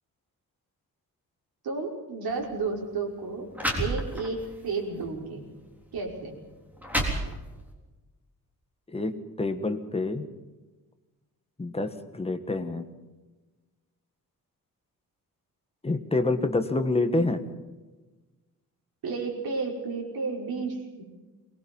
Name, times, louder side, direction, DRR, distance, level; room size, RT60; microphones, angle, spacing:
voice 1, 1.6-3.5 3.8-5.5 5.9-6.4 19.0-21.0, right 4 dB, 80° right, 1 dB, 5.7 m, -32 dB
sound 1, 2.3-2.5 3.2-3.3 3.5-4.5 5.0-5.2 6.0-6.1 6.6-7.7, right 1 dB, 5° right, 3.8 m, -30 dB
voice 2, 8.9-10.3 11.6-12.8 15.8-17.4, left 2 dB, 15° left, 7 dB, 1.5 m, -27 dB
23.0 x 20.5 x 5.5 m, 1.2 s
wide cardioid pair, 165°, 37 cm